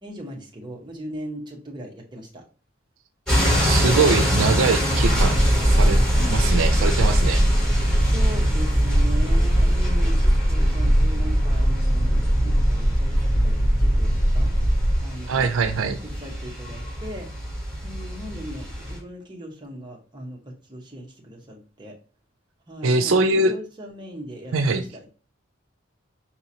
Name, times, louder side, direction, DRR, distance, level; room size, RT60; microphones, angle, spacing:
voice 1, 0.0-2.4 6.2-6.4 8.0-14.5 15.0-15.5 15.7-17.3 17.8-22.0 22.7-25.1, equal, 20° right, -1 dB, 0.8 m, -38 dB
sound 1, 3.3-19.0, equal, 5° left, 1.9 m, -26 dB
voice 2, 3.6-6.0 6.3-7.5 15.3-16.0 22.8-23.5 24.5-24.8, right 3 dB, 85° right, 8 dB, 0.4 m, -22 dB
sound 2, 5.0-15.0, equal, 25° left, 1.2 m, -20 dB
4.9 x 2.9 x 2.7 m, 0.38 s
head